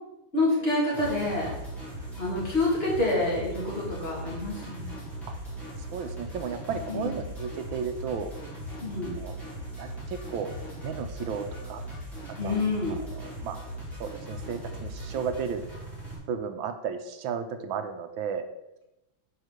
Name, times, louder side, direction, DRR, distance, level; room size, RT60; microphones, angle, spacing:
voice 1, 0.3-1.6 2.2-5.0 6.9-7.2 8.8-9.2 12.4-12.9, left 2 dB, 30° left, -5 dB, 2.5 m, -27 dB
sound 1, 0.9-16.2, right 1 dB, ahead, 2.6 m, -39 dB
voice 2, 5.8-8.3 9.2-9.4 9.8-10.5 10.8-11.8 12.4-12.6 13.1-13.6 14.0-15.6 16.3-18.5, right 6 dB, 80° right, 8 dB, 1.4 m, -34 dB
5.6 x 4.8 x 6.4 m, 0.93 s
omnidirectional pair, 2.2 m